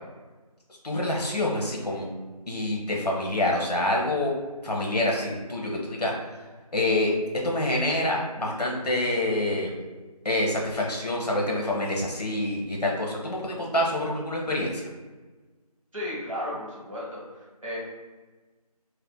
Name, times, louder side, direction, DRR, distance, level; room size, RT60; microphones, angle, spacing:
voice 1, 0.8-2.1 2.5-4.3 4.6-6.1 6.7-7.1 7.4-9.7 10.2-14.9, left 1 dB, 85° left, -1 dB, 0.8 m, -26 dB
voice 2, 15.9-17.8, left 1 dB, 55° right, -6 dB, 1.0 m, -34 dB
2.7 x 2.1 x 2.2 m, 1.3 s
figure-of-eight pair, 175°, 20 cm